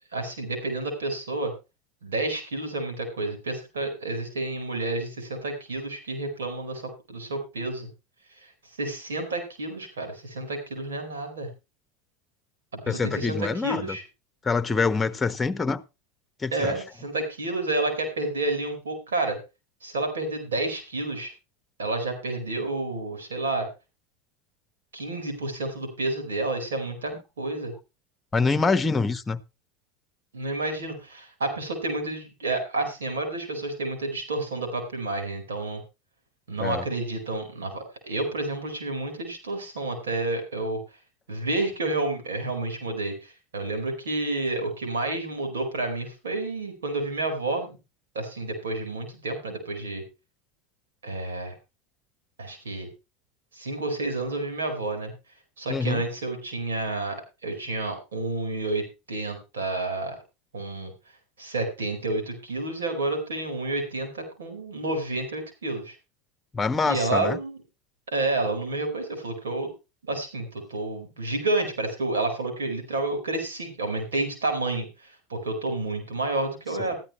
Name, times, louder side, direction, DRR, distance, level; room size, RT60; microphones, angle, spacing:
voice 1, 0.1-1.5 2.0-7.9 8.8-11.5 12.7-14.0 16.5-19.4 19.8-21.3 21.8-23.7 24.9-27.7 30.3-35.8 36.5-40.8 41.3-47.8 48.1-50.0 51.0-51.5 52.4-52.9 53.5-55.1 55.6-60.2 60.5-60.9 61.4-65.9 66.9-67.6 68.1-69.7 70.0-77.0, right 2 dB, 85° right, 4.7 m, -30 dB
voice 2, 12.9-14.0 14.4-15.8 16.4-16.8 28.3-29.4 36.6-36.8 55.7-56.0 66.5-67.4 76.8-76.9, left 4 dB, 20° left, 1.3 m, -25 dB
15.0 x 11.5 x 3.2 m
hypercardioid pair, 90°, 0 cm